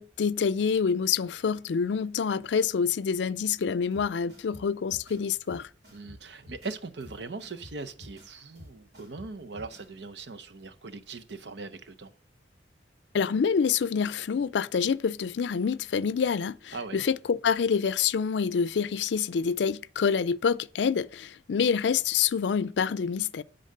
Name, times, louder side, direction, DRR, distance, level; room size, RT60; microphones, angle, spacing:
voice 1, 0.0-5.7 13.1-23.4, left 6 dB, 80° left, 0.4 m, -27 dB
sound 1, 3.9-9.9, left 1 dB, 65° right, 3.0 m, -50 dB
voice 2, 5.9-12.1 16.7-17.0, right 3 dB, 80° right, 0.8 m, -40 dB
10.0 x 4.0 x 6.6 m
head